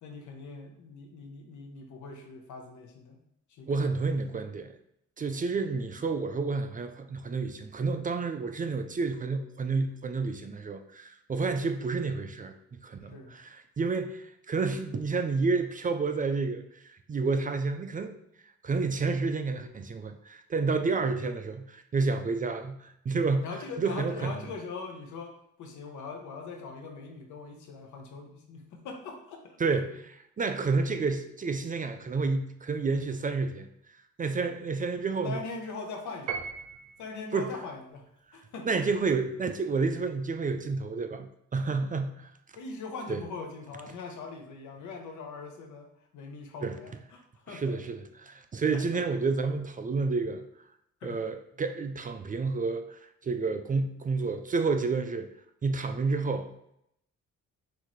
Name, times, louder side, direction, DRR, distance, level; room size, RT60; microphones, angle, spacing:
voice 1, 0.0-3.2 3.5-4.5 13.1-13.4 20.8-21.0 23.4-29.6 34.4-34.5 35.2-36.4 37.0-38.1 38.3-38.8 42.5-47.7 48.7-48.8 51.0-51.2, left 4 dB, 75° left, 3 dB, 1.0 m, -42 dB
voice 2, 3.7-4.7 5.2-18.2 18.6-23.4 23.8-24.4 29.6-29.9 30.4-33.7 34.2-35.4 37.3-37.5 38.7-42.3 43.1-43.2 46.6-46.7 47.5-50.4 51.0-55.3 55.6-56.5, right 4 dB, 30° right, 7 dB, 0.4 m, -30 dB
Piano, 36.3-37.2, right 6 dB, 80° right, 0.7 m, -37 dB
5.9 x 2.7 x 3.1 m, 0.75 s
cardioid pair, 90°, 30 cm